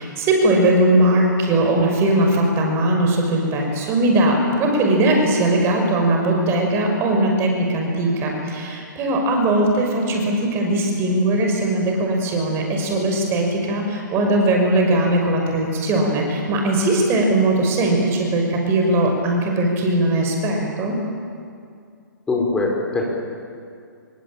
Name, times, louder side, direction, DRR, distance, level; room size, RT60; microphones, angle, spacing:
voice 1, 0.0-20.9, right 1 dB, 25° right, 1 dB, 5.9 m, -19 dB
voice 2, 22.3-23.0, left 3 dB, 10° left, -1 dB, 5.5 m, -21 dB
28.0 x 23.5 x 8.8 m, 2.3 s
hypercardioid pair, 140°, 11 cm